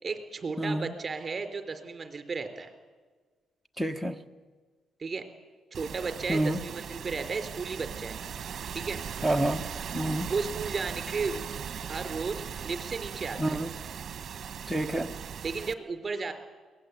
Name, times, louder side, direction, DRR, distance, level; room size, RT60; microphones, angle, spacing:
voice 1, 0.0-2.7 5.0-5.2 5.7-8.2 8.7-9.0 10.3-11.4 11.9-13.6 15.4-16.3, right 4 dB, 35° right, 7 dB, 3.7 m, -34 dB
voice 2, 0.6-0.9 3.8-4.2 6.3-6.6 9.2-9.6 9.9-10.3 13.4-13.7 14.7-15.1, right 1 dB, 5° right, 5 dB, 1.4 m, -28 dB
sound 1, 5.7-15.7, right 7 dB, 50° right, 1.2 m, -39 dB
23.0 x 18.5 x 8.3 m, 1.4 s
cardioid pair, 90°, 0 cm